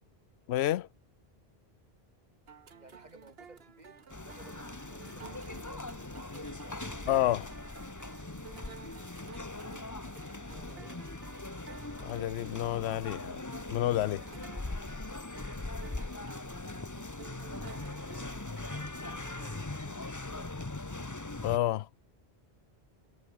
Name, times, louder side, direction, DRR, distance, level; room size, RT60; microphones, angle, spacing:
voice 1, 0.5-0.9 7.1-7.5 12.0-13.4 13.7-14.2 21.4-21.9, left 13 dB, 80° left, 0.8 m, -29 dB
sound 1, 2.5-19.6, right 6 dB, 70° right, 1.5 m, -53 dB
voice 2, 2.8-6.8 9.7-11.0 17.7-21.1, right 2 dB, 40° right, 2.5 m, -59 dB
sound 2, 4.1-21.6, left 2 dB, 20° left, 1.0 m, -41 dB
omnidirectional pair, 1.1 m